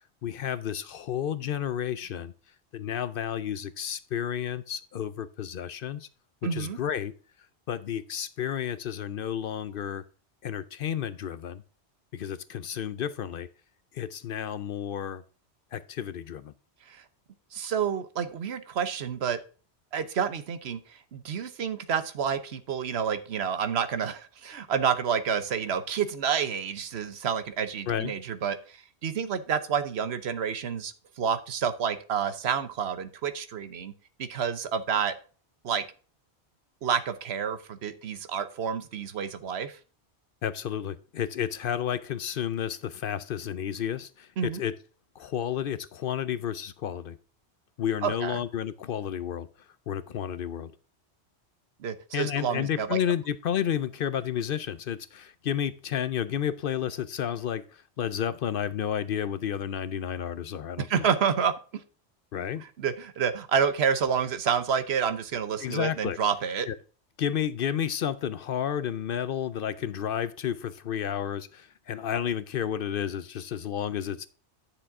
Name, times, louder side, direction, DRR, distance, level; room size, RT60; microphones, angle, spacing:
voice 1, 0.2-2.3 2.7-6.1 6.4-7.1 7.7-10.0 10.4-11.6 12.1-13.5 13.9-15.2 15.7-16.5 27.9-28.1 40.4-44.8 45.2-47.2 47.8-49.5 49.9-50.7 52.1-61.1 62.3-62.6 65.6-66.2 66.7-66.8 67.2-74.3, left 9 dB, 60° left, 0.7 m, -31 dB
voice 2, 6.4-6.8 16.9-17.0 17.5-19.4 19.9-33.9 34.2-35.1 35.6-35.8 36.8-39.8 44.4-44.6 48.0-48.4 51.8-53.0 60.8-61.8 62.6-66.7, right 7 dB, 70° right, 1.1 m, -29 dB
10.0 x 6.7 x 3.6 m
omnidirectional pair, 1.1 m